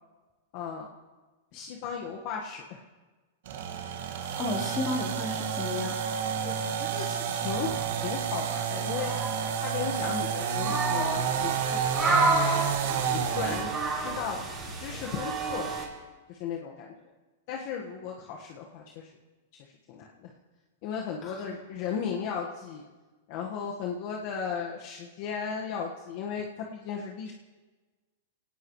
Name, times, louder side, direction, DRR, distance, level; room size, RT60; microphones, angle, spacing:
voice 1, 0.5-0.9 1.5-2.8 6.4-9.1 9.6-12.3 12.8-13.7 14.0-15.8 16.3-16.9 17.5-19.1 19.6-20.3 20.8-22.9 23.3-27.3, left 6 dB, 50° left, 0 dB, 1.6 m, -36 dB
sound 1, 3.5-13.7, right 8 dB, 70° right, 1.9 m, -30 dB
voice 2, 4.0-6.0 21.2-21.5, left 3 dB, 25° left, -2 dB, 4.0 m, -34 dB
sound 2, 7.5-8.1 8.9-15.8, right 2 dB, 15° right, 4.5 m, -31 dB
22.0 x 18.0 x 3.2 m, 1.3 s
hypercardioid pair, 140°, 0 cm